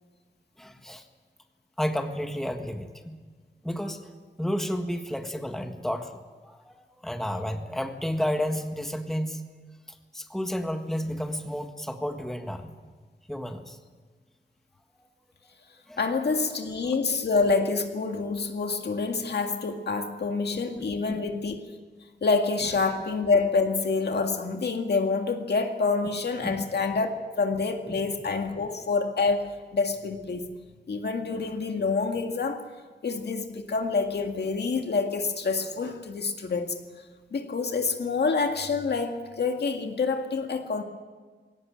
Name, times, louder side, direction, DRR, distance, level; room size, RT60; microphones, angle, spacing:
voice 1, 0.6-1.0 1.8-3.2 3.6-4.0 4.4-6.1 6.4-9.4 10.1-12.7 13.3-13.8 15.9-16.0 20.5-21.2 26.4-26.6, equal, ahead, 5 dB, 1.6 m, -31 dB
voice 2, 16.0-21.7 22.2-30.5 30.9-32.6 33.0-36.7 37.3-40.8, left 4 dB, 65° left, 4 dB, 2.1 m, -27 dB
20.5 x 17.5 x 8.9 m, 1.5 s
wide cardioid pair, 115°, 19 cm